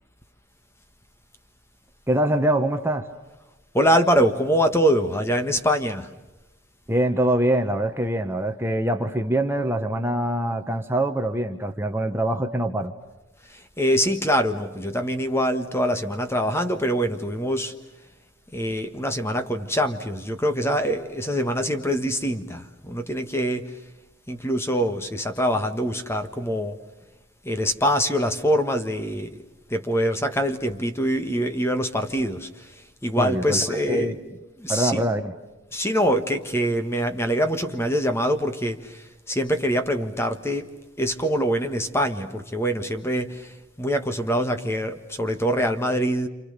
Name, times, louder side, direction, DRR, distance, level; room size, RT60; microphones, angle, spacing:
voice 1, 2.1-3.1 6.9-12.9 33.2-34.2 34.7-35.3, right 1 dB, 10° right, 1.2 m, -24 dB
voice 2, 3.7-6.1 13.5-17.7 18.5-23.7 24.3-26.8 27.4-29.4 29.7-32.7 33.0-34.2 34.6-35.1 35.7-40.7 41.0-46.3, equal, 10° left, 1.4 m, -24 dB
28.5 x 28.5 x 6.8 m
head